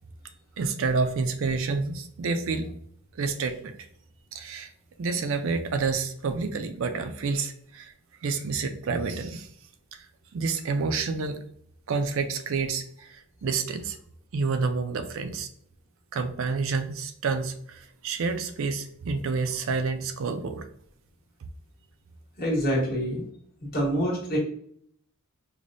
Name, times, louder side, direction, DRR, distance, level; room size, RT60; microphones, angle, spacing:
voice 1, 0.6-2.7 3.1-3.8 4.3-4.7 5.0-7.9 8.2-9.5 9.9-10.1 10.3-11.4 11.9-14.0 14.3-15.5 16.1-20.7, right 4 dB, 60° right, 7 dB, 0.4 m, -29 dB
voice 2, 22.4-23.2 23.6-24.4, equal, 40° left, -3 dB, 1.3 m, -26 dB
4.9 x 2.2 x 2.6 m, 0.64 s
head